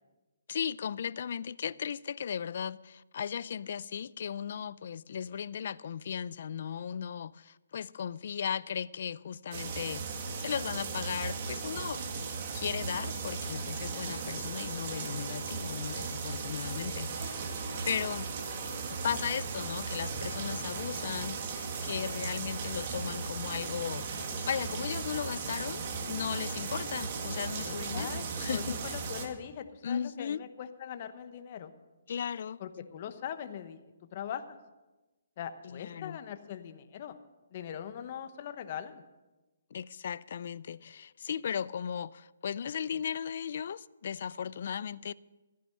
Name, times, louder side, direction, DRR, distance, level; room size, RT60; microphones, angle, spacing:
voice 1, 0.5-10.0 10.4-12.0 12.5-17.5 17.9-18.3 18.9-24.1 24.5-29.0 29.8-30.4 32.1-32.6 35.6-36.2 39.7-45.1, left 8 dB, 50° left, 0.4 m, -36 dB
sound 1, 9.5-29.3, right 5 dB, 40° right, 1.8 m, -37 dB
voice 2, 27.6-31.7 32.6-33.8 34.1-34.6 35.4-37.1 37.5-39.0, left 9 dB, 35° left, 1.0 m, -41 dB
14.0 x 10.0 x 6.4 m
hypercardioid pair, 160°, 0 cm